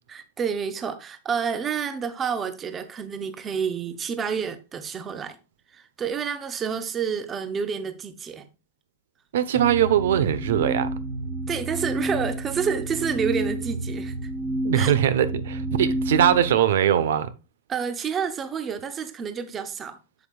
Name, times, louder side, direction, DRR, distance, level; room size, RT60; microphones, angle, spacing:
voice 1, 0.1-5.4 5.7-8.5 11.5-14.3 14.7-14.9 17.7-20.0, right 6 dB, 15° right, 0.6 m, -29 dB
voice 2, 9.3-10.9 14.6-17.3, right 10 dB, 75° right, 0.9 m, -21 dB
sound 1, 9.5-16.6, right 1 dB, 35° right, 1.0 m, -30 dB
8.2 x 7.4 x 2.4 m
supercardioid pair, 175°, 0 cm